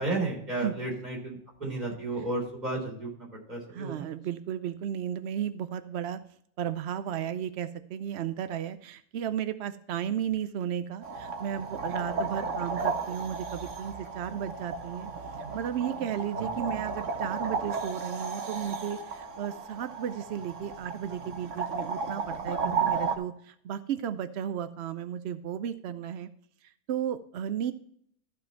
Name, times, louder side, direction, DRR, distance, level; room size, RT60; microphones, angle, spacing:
voice 1, 0.0-4.1 16.4-16.5, right 2 dB, 25° right, -3 dB, 3.9 m, -33 dB
voice 2, 3.7-6.2 6.6-15.1 15.5-26.3 26.9-27.7, right 9 dB, 75° right, 12 dB, 0.6 m, -34 dB
sound 1, 11.0-23.2, right 4 dB, 50° right, 1.3 m, -34 dB
14.0 x 5.1 x 4.4 m, 0.66 s
omnidirectional pair, 1.7 m